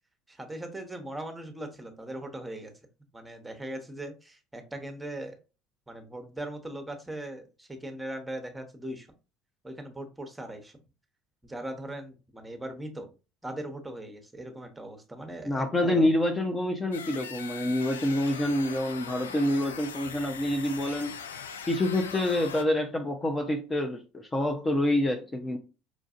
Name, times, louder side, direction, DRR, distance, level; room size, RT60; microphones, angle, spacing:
voice 1, 0.3-2.7 3.1-5.3 5.9-9.1 9.6-10.8 11.4-13.1 13.4-16.1, right 1 dB, 10° right, 0.9 m, -39 dB
voice 2, 15.5-21.1 21.7-25.6, left 1 dB, 20° left, 0.6 m, -27 dB
sound 1, 16.9-22.6, left 6 dB, 90° left, 0.3 m, -41 dB
4.9 x 2.5 x 2.4 m
hypercardioid pair, 70°, 0 cm